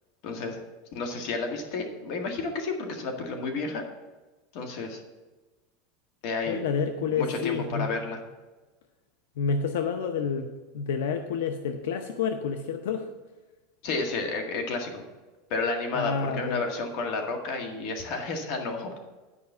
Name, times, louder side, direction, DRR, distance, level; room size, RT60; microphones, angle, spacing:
voice 1, 0.2-0.6 0.9-3.8 4.5-5.0 6.2-6.6 7.1-8.2 13.8-15.0 15.5-18.9, left 3 dB, 50° left, 3 dB, 1.7 m, -31 dB
voice 2, 6.5-7.9 9.4-13.1 15.9-16.6, left 6 dB, 90° left, 6 dB, 0.7 m, -29 dB
9.8 x 5.3 x 6.8 m, 1.2 s
supercardioid pair, 155°, 0 cm